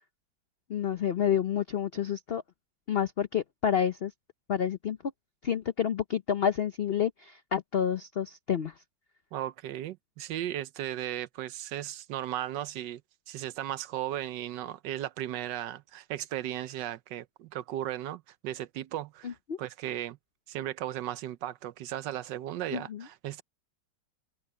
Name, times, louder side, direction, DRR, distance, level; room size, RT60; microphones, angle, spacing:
voice 1, 0.7-2.4 2.9-4.1 4.5-5.0 5.4-8.7 19.2-19.6 22.7-23.1, left 8 dB, 75° left, 0.5 m, -29 dB
voice 2, 9.3-13.0 13.3-20.2 20.5-23.4, right 12 dB, 75° right, 1.3 m, -36 dB
omnidirectional pair, 2.0 m